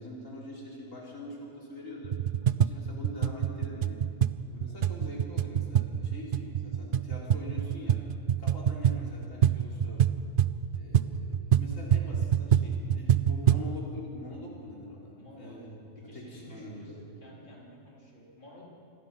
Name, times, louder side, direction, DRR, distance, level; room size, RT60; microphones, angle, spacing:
voice 1, 0.0-2.2 2.6-4.0 4.5-8.0 8.4-10.0 10.7-17.1, left 1 dB, 75° left, -4 dB, 4.1 m, -44 dB
sound 1, 2.0-13.7, right 9 dB, 55° right, 0.6 m, -26 dB
voice 2, 15.1-15.7 16.0-18.6, left 1 dB, 40° left, -4 dB, 4.3 m, -52 dB
27.0 x 21.0 x 5.5 m, 2.7 s
omnidirectional pair, 1.4 m